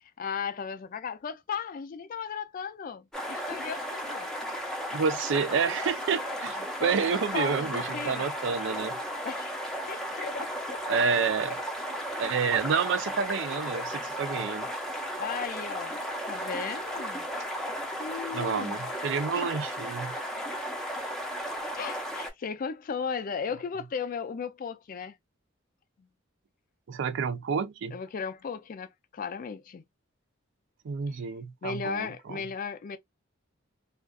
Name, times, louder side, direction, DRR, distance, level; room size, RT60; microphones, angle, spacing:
voice 1, 0.2-4.3 6.8-8.2 9.2-10.8 15.2-16.0 16.3-17.3 18.0-18.8 19.3-19.4 21.7-25.2 26.0-26.1 27.9-29.8 31.1-31.2 31.6-33.0, left 6 dB, 45° left, 0.4 m, -36 dB
sound 1, 3.1-22.3, equal, 5° left, 0.6 m, -35 dB
voice 2, 4.9-8.9 10.9-11.6 12.2-14.7 18.3-20.1 26.9-28.0 30.8-32.4, right 6 dB, 65° right, 0.4 m, -29 dB
2.4 x 2.3 x 2.2 m
head